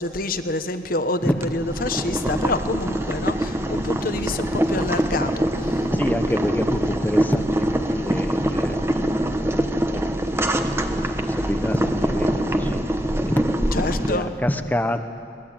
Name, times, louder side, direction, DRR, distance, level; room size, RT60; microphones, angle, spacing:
voice 1, 0.0-5.7 13.7-14.3, left 2 dB, 50° left, 9 dB, 1.2 m, -27 dB
voice 2, 1.2-1.6 5.9-8.9 9.8-12.8 13.2-15.0, equal, 10° left, 8 dB, 0.8 m, -27 dB
Boiling, 1.4-14.1, right 1 dB, 15° right, 1.1 m, -24 dB
22.0 x 20.5 x 8.9 m, 2.5 s
head